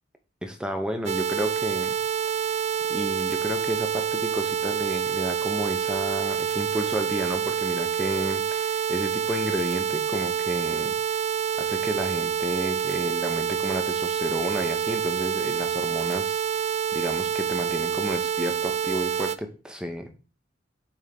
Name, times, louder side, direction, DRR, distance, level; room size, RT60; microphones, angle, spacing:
voice 1, 0.4-1.9 2.9-11.2 11.6-20.1, equal, 5° right, 6 dB, 0.9 m, -32 dB
sound 1, 1.1-19.4, right 8 dB, 35° right, 0.3 m, -27 dB
7.1 x 3.6 x 5.2 m, 0.35 s
head